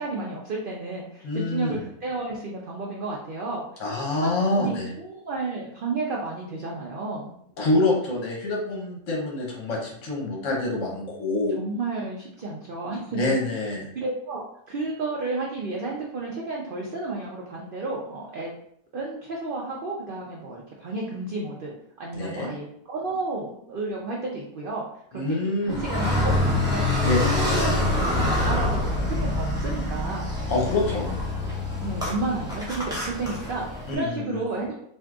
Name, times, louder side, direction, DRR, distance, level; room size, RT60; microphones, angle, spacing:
voice 1, 0.0-3.6 4.2-7.3 11.6-13.4 13.9-18.5 18.9-24.8 25.1-26.9 27.2-27.7 28.0-30.2 31.8-34.9, right 3 dB, 70° right, -2 dB, 0.5 m, -32 dB
voice 2, 1.2-1.8 3.8-4.9 7.6-11.6 13.1-13.9 22.1-22.5 25.1-25.8 27.0-27.6 30.5-31.1 33.9-34.5, left 2 dB, 65° left, -2 dB, 1.1 m, -26 dB
Car, 25.7-33.9, left 2 dB, 5° right, 0.4 m, -26 dB
3.6 x 2.6 x 2.3 m, 0.70 s
omnidirectional pair, 1.5 m